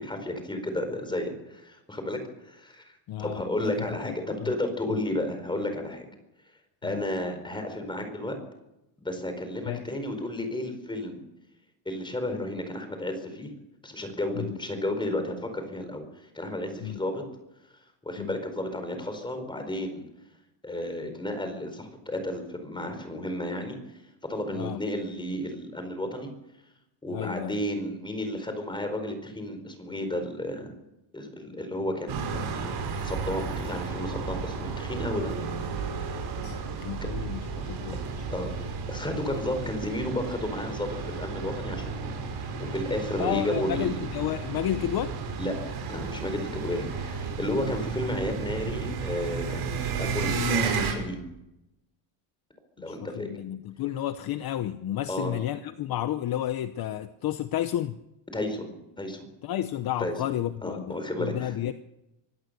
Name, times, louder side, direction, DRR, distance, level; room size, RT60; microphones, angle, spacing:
voice 1, 0.0-6.0 6.8-8.4 9.0-11.2 11.8-13.5 13.8-16.0 16.3-17.2 18.0-20.0 20.6-23.8 24.3-26.3 27.0-30.7 31.1-32.5 32.9-35.3 38.3-38.5 38.9-42.2 42.6-44.0 45.4-45.6 45.9-51.2 52.8-53.3 55.1-55.3 58.3-59.3 60.0-60.2 60.6-61.5, left 1 dB, 10° left, 7 dB, 4.7 m, -32 dB
voice 2, 3.1-3.4 3.8-4.5 6.8-7.0 9.7-9.8 14.4-14.6 16.8-17.0 18.2-18.4 24.5-24.8 27.1-27.6 36.4-38.3 43.2-45.2 52.9-57.9 59.4-60.9 61.2-61.7, left 12 dB, 50° left, 11 dB, 0.9 m, -32 dB
sound 1, 32.1-50.9, right 5 dB, 55° right, 6.9 m, -33 dB
24.5 x 17.0 x 6.9 m, 0.91 s
cardioid pair, 150°, 47 cm